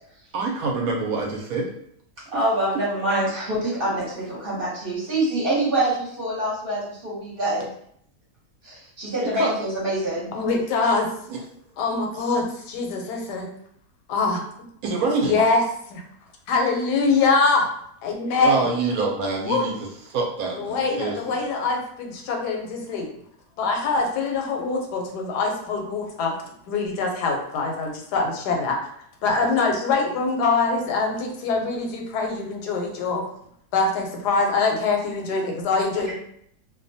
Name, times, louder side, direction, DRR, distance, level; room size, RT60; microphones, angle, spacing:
voice 1, 0.3-1.7 2.3-2.4 9.2-9.5 11.3-11.4 14.8-15.4 18.4-19.7 20.1-21.4 29.4-29.5, right 4 dB, 70° right, -1 dB, 0.9 m, -26 dB
voice 2, 2.3-7.7 8.6-10.3 36.0-36.1, right 1 dB, 45° right, -7 dB, 0.9 m, -25 dB
voice 3, 10.3-11.1 11.8-13.5 14.1-14.4 15.2-15.6 15.9-16.0 16.5-17.7 18.0-18.7 19.5-19.7 20.5-23.1 23.6-26.3 26.7-28.9 29.2-33.2 33.7-36.2, left 3 dB, 85° left, 2 dB, 1.2 m, -23 dB
2.6 x 2.1 x 2.6 m, 0.68 s
omnidirectional pair, 1.7 m